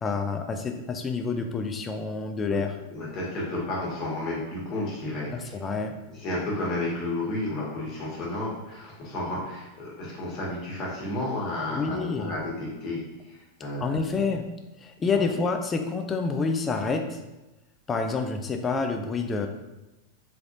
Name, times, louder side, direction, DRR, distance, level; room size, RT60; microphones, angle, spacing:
voice 1, 0.0-2.7 5.3-6.0 11.7-12.3 13.8-14.5 14.8-17.2 17.9-19.5, left 4 dB, 20° left, 5 dB, 0.4 m, -28 dB
voice 2, 2.9-5.5 6.1-14.3 15.1-15.3, left 1 dB, 35° left, -4 dB, 1.4 m, -32 dB
3.8 x 3.3 x 2.6 m, 1.0 s
figure-of-eight pair, 90°, 0 cm